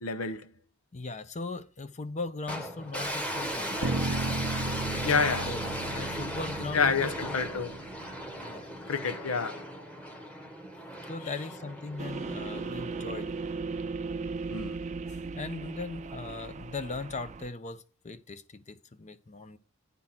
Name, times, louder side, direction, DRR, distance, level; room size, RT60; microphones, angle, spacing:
voice 1, 0.0-0.5 5.0-5.5 6.7-7.7 8.9-9.6 14.5-14.8, left 5 dB, 85° left, 0.7 m, -28 dB
voice 2, 0.9-4.0 4.9-7.3 8.4-8.6 11.1-13.3 15.1-19.6, left 3 dB, 35° left, 0.6 m, -39 dB
sound 1, 2.5-13.7, equal, 5° left, 1.2 m, -37 dB
sound 2, 3.8-7.9, right 3 dB, 80° right, 0.8 m, -35 dB
sound 3, 12.0-17.5, right 4 dB, 35° right, 0.5 m, -37 dB
9.6 x 3.7 x 5.9 m
head